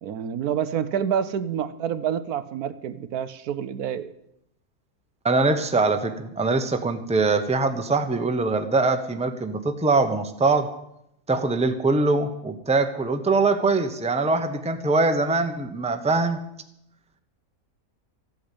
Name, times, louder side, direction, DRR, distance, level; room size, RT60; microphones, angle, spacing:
voice 1, 0.0-4.1, right 8 dB, 80° right, 12 dB, 1.3 m, -28 dB
voice 2, 5.2-10.7 11.3-16.4, right 3 dB, 5° right, 7 dB, 0.8 m, -23 dB
14.0 x 8.6 x 8.5 m, 0.79 s
omnidirectional pair, 1.6 m